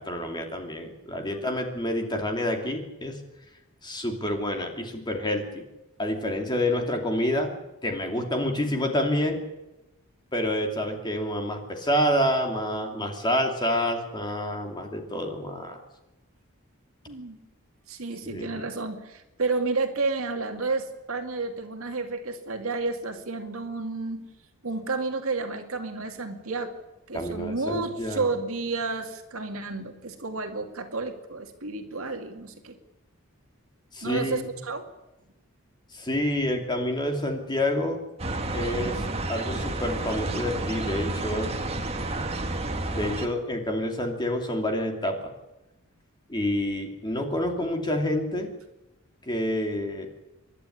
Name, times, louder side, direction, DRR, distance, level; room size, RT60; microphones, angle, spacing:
voice 1, 0.0-3.2 3.8-5.6 6.0-7.5 7.8-9.4 10.3-15.8 18.2-18.6 27.1-28.3 33.9-34.5 35.9-38.0 38.5-39.0 39.3-41.5 42.9-45.2 46.3-48.5 49.2-50.1, left 1 dB, 20° left, 3 dB, 2.8 m, -28 dB
voice 2, 17.1-17.4 17.9-24.3 24.6-26.8 27.1-32.8 34.0-34.9, right 3 dB, 70° right, 5 dB, 2.3 m, -31 dB
sound 1, 38.2-43.3, right 2 dB, 30° right, 1.7 m, -30 dB
28.0 x 11.5 x 9.8 m, 0.98 s
head